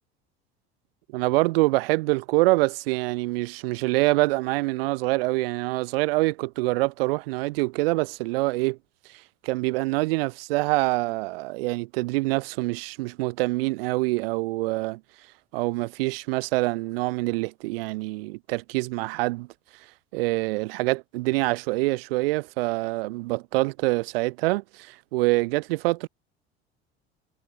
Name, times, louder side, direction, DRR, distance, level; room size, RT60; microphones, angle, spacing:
voice 1, 1.1-8.8 9.4-15.0 15.5-19.5 20.1-26.1, right 22 dB, 65° right, 6.3 m, -25 dB
figure-of-eight pair, 65°, 32 cm